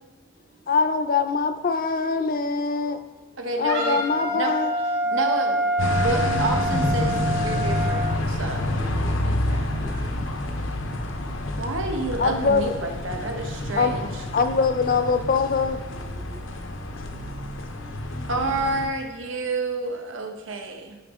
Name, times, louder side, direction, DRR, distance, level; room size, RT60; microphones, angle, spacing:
voice 1, 0.7-3.0 3.6-4.7 5.0-5.2 12.2-12.8 13.8-15.8, left 4 dB, 45° left, 9 dB, 0.5 m, -23 dB
voice 2, 3.4-4.0 4.3-4.5 5.1-9.7 11.6-14.0 18.3-21.0, right 2 dB, 85° right, 3 dB, 1.0 m, -29 dB
Wind instrument woodwind instrument, 3.7-8.1, right 1 dB, 55° right, 1.7 m, -26 dB
sound 1, 5.8-18.9, left 1 dB, 80° left, 0.8 m, -28 dB
voice 3, 8.8-10.7 11.1-11.6 15.9-17.5 18.1-18.3, right 2 dB, 20° right, 6 dB, 0.6 m, -49 dB
10.0 x 5.2 x 3.6 m, 1.3 s
head